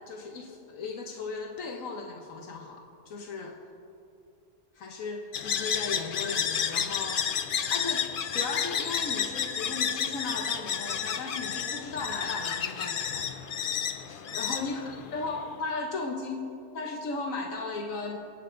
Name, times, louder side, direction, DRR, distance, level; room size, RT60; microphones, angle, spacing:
voice 1, 0.0-3.6 4.7-7.3 7.7-13.4 14.3-14.8 15.1-16.4 16.7-18.2, left 3 dB, 90° left, 1 dB, 1.5 m, -36 dB
sound 1, 5.3-15.5, left 8 dB, 55° left, 0.7 m, -31 dB
26.0 x 8.9 x 3.9 m, 2.7 s
omnidirectional pair, 1.3 m